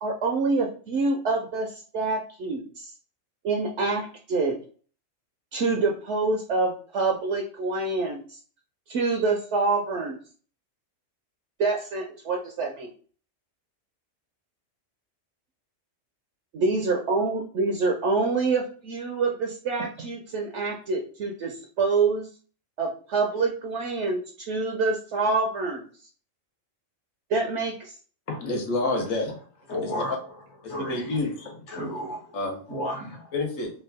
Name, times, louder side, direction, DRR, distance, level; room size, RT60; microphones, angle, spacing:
voice 1, 0.0-2.9 3.4-4.6 5.5-8.4 8.9-10.2 11.6-12.9 16.5-22.3 22.8-25.9 27.3-28.0, right 3 dB, 65° right, 2 dB, 0.8 m, -26 dB
voice 2, 28.3-29.4 29.8-30.0 30.9-31.6 32.3-32.6 33.3-33.7, left 2 dB, 75° left, 2 dB, 1.3 m, -28 dB
voice 3, 29.7-30.2 30.7-31.2 31.7-32.4 32.7-33.3, equal, 60° left, -3 dB, 1.5 m, -33 dB
3.5 x 2.3 x 3.4 m, 0.42 s
omnidirectional pair, 1.4 m